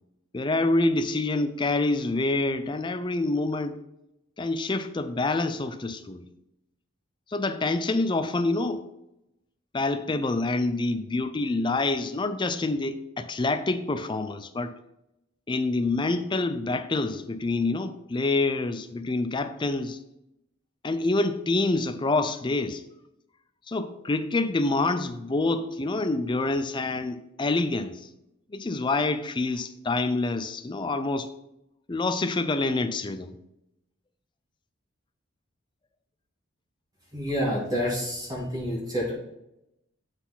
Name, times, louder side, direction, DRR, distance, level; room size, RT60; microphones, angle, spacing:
voice 1, 0.3-3.8 4.4-6.3 7.3-8.9 9.7-14.7 15.5-20.0 20.8-22.8 23.7-28.1 28.5-31.3 31.9-33.3, left 2 dB, 25° left, 0.4 m, -27 dB
voice 2, 37.1-39.1, equal, 20° right, 1.6 m, -28 dB
7.9 x 4.1 x 4.0 m
head